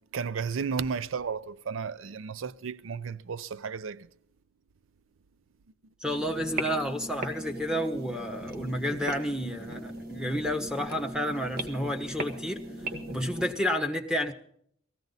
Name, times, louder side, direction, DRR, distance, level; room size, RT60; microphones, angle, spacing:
voice 1, 0.1-4.1, right 6 dB, 85° right, 0.5 m, -33 dB
voice 2, 6.0-12.6 13.1-14.3, equal, 5° right, 1.3 m, -30 dB
sound 1, 6.0-13.5, right 1 dB, 50° right, 1.6 m, -38 dB
18.5 x 15.0 x 4.0 m
head